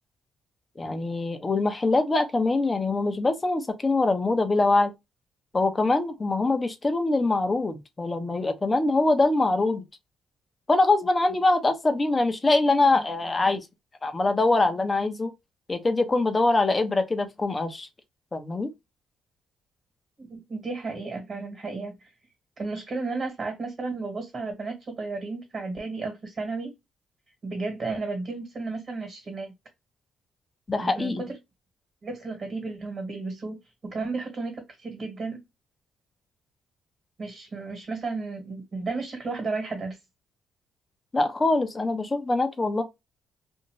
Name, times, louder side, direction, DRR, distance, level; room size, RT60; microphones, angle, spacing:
voice 1, 0.8-4.9 5.5-9.8 10.7-13.6 14.0-15.3 15.7-17.9 18.3-18.7 30.7-31.2 41.1-42.8, left 2 dB, 25° left, 0.7 m, -23 dB
voice 2, 20.2-22.1 22.6-26.7 27.4-29.5 30.8-31.4 32.0-35.4 37.2-40.0, right 3 dB, 40° right, 1.4 m, -33 dB
2.7 x 2.4 x 2.9 m
cardioid pair, 90°, 0 cm